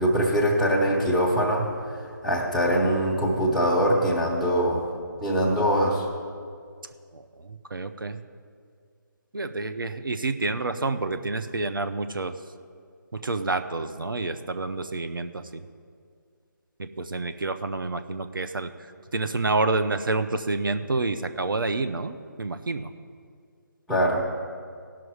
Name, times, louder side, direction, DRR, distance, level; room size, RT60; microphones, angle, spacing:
voice 1, 0.0-4.9 5.2-6.1 23.9-24.3, equal, ahead, -5 dB, 1.0 m, -23 dB
voice 2, 7.5-8.2 9.3-12.4 13.1-15.6 16.8-18.7 19.1-22.9, right 3 dB, 90° right, 9 dB, 0.6 m, -28 dB
17.0 x 6.1 x 4.8 m, 2.2 s
figure-of-eight pair, 155°, 11 cm